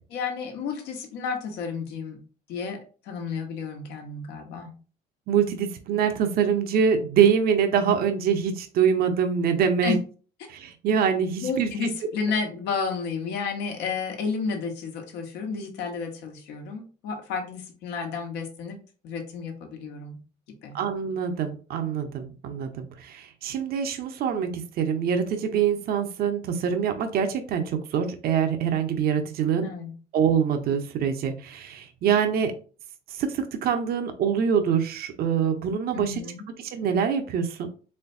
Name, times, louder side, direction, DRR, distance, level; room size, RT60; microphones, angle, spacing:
voice 1, 0.1-2.2 2.5-2.8 3.0-4.7 9.8-10.0 11.4-18.8 19.0-20.2 20.6-20.8 29.6-29.9 35.9-36.4, left 5 dB, 90° left, 4 dB, 1.1 m, -31 dB
voice 2, 5.3-10.0 10.5-11.9 20.7-29.7 30.1-32.5 33.1-36.2 36.6-37.7, right 7 dB, 65° right, 7 dB, 0.7 m, -24 dB
4.3 x 3.3 x 2.6 m, 0.38 s
cardioid pair, 110°, 17 cm